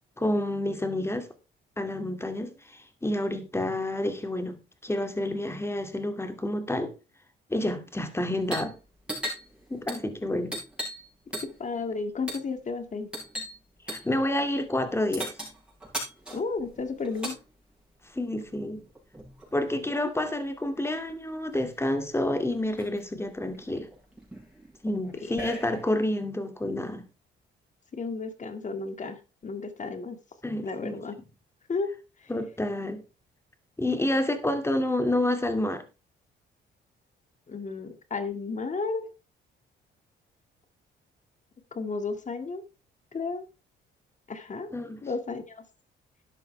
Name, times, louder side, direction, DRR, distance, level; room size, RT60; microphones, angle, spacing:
voice 1, 0.2-1.3 1.8-6.9 7.5-8.7 9.7-10.5 13.9-15.3 18.1-18.8 19.5-23.9 24.8-27.0 30.4-31.0 32.3-33.0 33.8-35.8 44.7-45.0, left 1 dB, 10° left, 2.4 m, -29 dB
sound 1, 8.4-8.7 9.0-11.1 11.3-11.7 12.3-12.5 13.1-13.6 13.9-14.1 15.1-17.4 18.5-19.5 20.8-20.9 21.1-21.7 22.2-22.3 22.5-23.0 23.5-26.0, right 1 dB, 5° right, 7.8 m, -38 dB
voice 2, 11.4-13.1 16.3-17.4 25.2-25.4 27.9-30.2 30.6-31.1 31.7-31.9 32.2-32.3 37.5-39.1 41.7-42.6 43.1-43.4 44.3-44.7 45.0-45.6, left 4 dB, 40° left, 2.1 m, -33 dB
13.0 x 10.5 x 3.4 m
cardioid pair, 90°, 20 cm